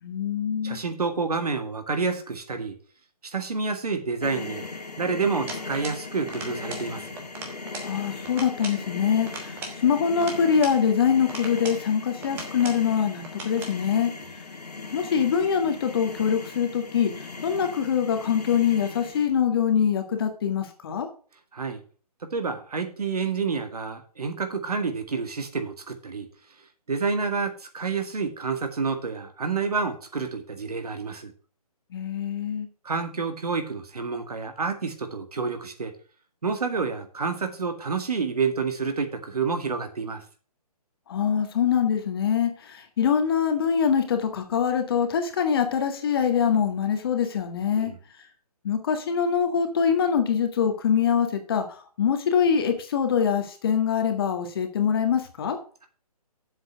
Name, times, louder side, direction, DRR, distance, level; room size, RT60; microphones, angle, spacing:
voice 1, 0.0-0.8 7.8-14.1 14.9-17.1 17.4-21.1 31.9-32.7 41.1-47.9 48.6-51.6 52.0-55.6, left 7 dB, 40° left, 6 dB, 1.7 m, -24 dB
voice 2, 0.6-2.8 3.2-4.6 5.0-7.1 14.0-14.1 21.5-21.8 22.2-26.3 26.9-31.3 32.8-35.9 36.4-40.2 47.8-48.0, right 4 dB, 75° right, 7 dB, 2.1 m, -29 dB
sound 1, 4.2-19.3, left 4 dB, 85° left, 2.3 m, -38 dB
sound 2, 5.5-6.0 6.3-6.9 7.2-7.9 8.2-8.8 9.3-10.8 11.3-11.8 12.2-12.8 13.2-13.8, right 3 dB, 10° right, 1.2 m, -39 dB
7.4 x 5.9 x 7.6 m, 0.40 s
hypercardioid pair, 160°, 20 cm